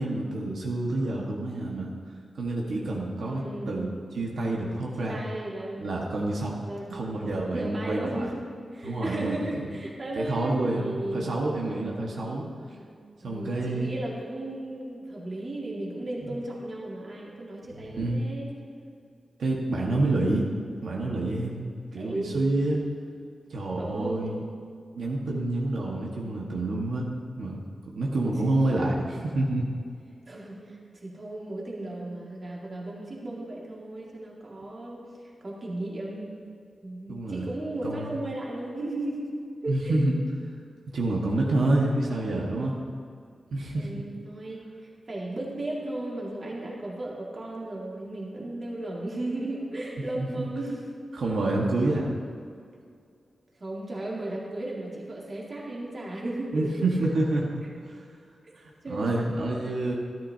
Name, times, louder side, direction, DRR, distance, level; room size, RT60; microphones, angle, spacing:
voice 1, 0.0-1.9 2.4-3.9 4.1-5.2 5.8-6.6 6.9-8.3 8.8-9.7 10.2-12.5 13.2-13.9 16.3-16.4 17.7-18.2 19.4-20.5 20.8-21.6 21.9-22.8 23.5-24.4 24.9-27.1 27.4-27.6 27.9-29.7 37.1-37.5 37.8-38.1 39.7-40.2 40.9-42.8 43.5-44.0 50.1-50.5 51.1-52.1 56.5-57.4 58.9-59.9, right 2 dB, 90° right, -3 dB, 1.5 m, -28 dB
voice 2, 3.3-3.7 5.0-5.8 6.6-11.4 12.1-12.2 12.6-12.8 13.2-18.5 22.0-22.6 23.8-24.3 30.3-35.1 35.4-36.3 36.8-39.4 39.6-40.0 43.7-51.0 53.6-56.7 57.0-57.1 58.4-58.5 58.8-59.3, right 1 dB, 35° right, -3 dB, 2.1 m, -35 dB
13.5 x 12.5 x 2.8 m, 2.3 s
wide cardioid pair, 140°, 0 cm